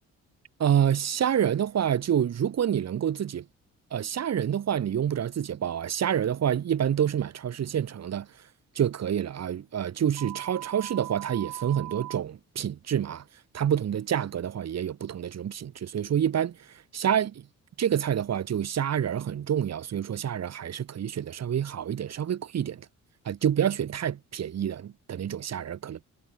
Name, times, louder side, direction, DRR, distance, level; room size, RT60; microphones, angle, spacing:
voice 1, 0.6-3.4 3.9-8.3 8.7-13.2 13.5-16.6 16.9-17.3 17.8-22.8 23.2-26.0, right 9 dB, 60° right, 3.3 m, -27 dB
sound 1, 10.2-12.2, right 14 dB, 85° right, 7.9 m, -39 dB
cardioid pair, 90°, 30 cm